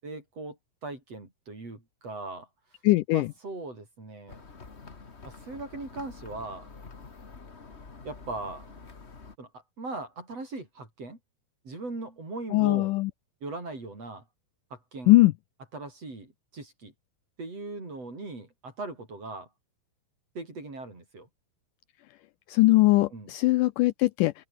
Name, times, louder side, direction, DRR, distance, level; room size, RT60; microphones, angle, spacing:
voice 1, 0.0-2.5 3.1-4.4 5.2-6.7 8.0-8.8 9.4-11.2 11.6-12.9 13.4-14.2 14.7-15.1 15.7-16.9 17.4-19.5 20.3-21.3 23.1-23.3, right 2 dB, 40° right, 7.9 m, -39 dB
voice 2, 2.8-3.3 12.5-13.1 15.1-15.3 22.5-24.3, left 19 dB, 80° left, 2.0 m, -21 dB
sound 1, 4.3-9.4, left 4 dB, 30° left, 1.2 m, -47 dB
open air
omnidirectional pair, 4.2 m